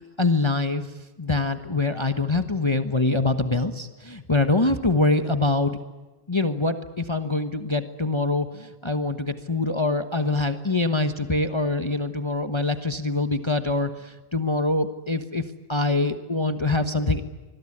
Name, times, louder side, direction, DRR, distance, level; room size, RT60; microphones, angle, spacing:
voice 1, 0.2-0.9 1.2-5.8 6.3-17.2, left 2 dB, 20° left, 8 dB, 1.2 m, -24 dB
26.0 x 21.5 x 9.9 m, 1.3 s
omnidirectional pair, 1.4 m